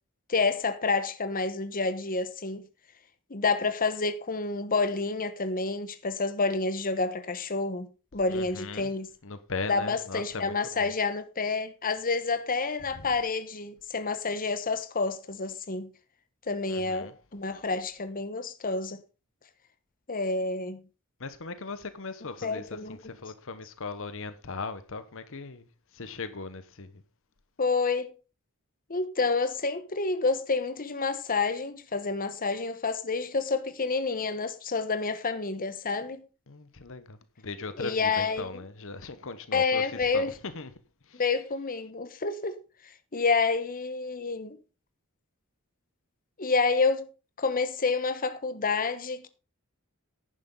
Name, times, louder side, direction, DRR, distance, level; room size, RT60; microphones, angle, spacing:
voice 1, 0.3-2.6 3.3-9.1 9.7-15.9 16.5-19.0 20.1-20.8 22.4-23.0 27.6-28.1 28.9-36.2 37.8-38.5 39.5-40.3 41.1-42.6 43.1-44.6 46.4-47.1 47.4-49.3, left 4 dB, 40° left, 1.1 m, -29 dB
voice 2, 8.3-8.9 9.2-10.9 12.9-13.1 16.7-17.1 21.2-25.7 25.9-27.0 36.5-40.7 41.1-41.2, left 4 dB, 65° left, 1.1 m, -39 dB
10.5 x 10.5 x 3.9 m
head